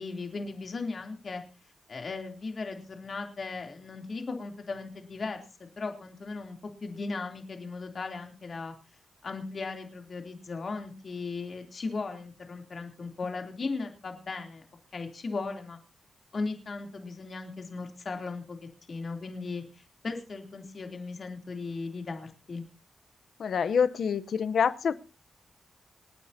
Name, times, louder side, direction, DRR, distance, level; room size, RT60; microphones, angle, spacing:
voice 1, 0.0-1.4 1.9-8.7 9.2-14.7 14.9-15.8 16.3-18.6 18.9-22.6, left 3 dB, 50° left, 4 dB, 3.1 m, -37 dB
voice 2, 23.4-24.9, left 6 dB, 75° left, 13 dB, 0.8 m, -26 dB
27.5 x 9.6 x 2.8 m, 0.31 s
cardioid pair, 90°, 0 cm